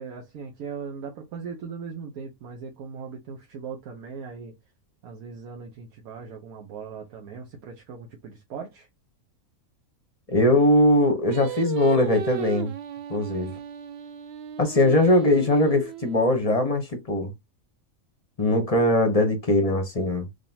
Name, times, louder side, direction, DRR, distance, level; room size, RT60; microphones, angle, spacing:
voice 1, 0.0-4.6 5.0-8.9, right 6 dB, 80° right, 1.3 m, -39 dB
voice 2, 10.3-12.7 13.1-13.5 14.6-17.3 18.4-20.3, left 1 dB, 35° left, 0.7 m, -21 dB
Singing, 11.3-16.6, right 8 dB, 65° right, 0.6 m, -36 dB
3.8 x 3.3 x 2.7 m
omnidirectional pair, 1.5 m